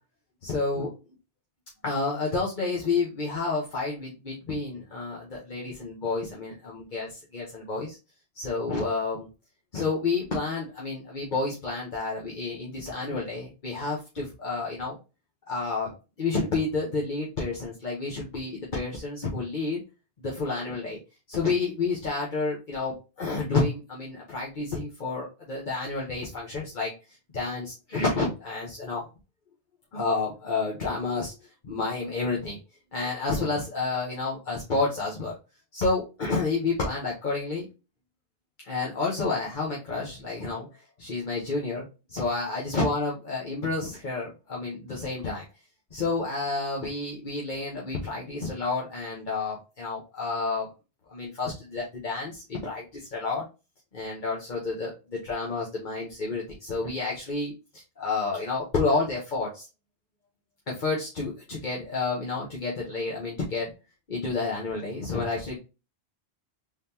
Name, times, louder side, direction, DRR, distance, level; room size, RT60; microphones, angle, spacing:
voice 1, 0.4-0.9 1.8-8.0 8.3-9.3 9.7-15.0 15.5-19.8 20.2-21.0 21.3-26.9 27.3-29.0 29.9-31.3 31.6-32.6 32.9-35.4 35.7-37.6 38.6-40.7 41.0-41.8 42.1-45.4 45.9-50.7 51.1-53.4 53.9-59.7 60.7-63.7 64.1-65.6, left 3 dB, 50° left, -4 dB, 1.2 m, -30 dB
3.9 x 3.4 x 2.8 m, 0.29 s
omnidirectional pair, 1.1 m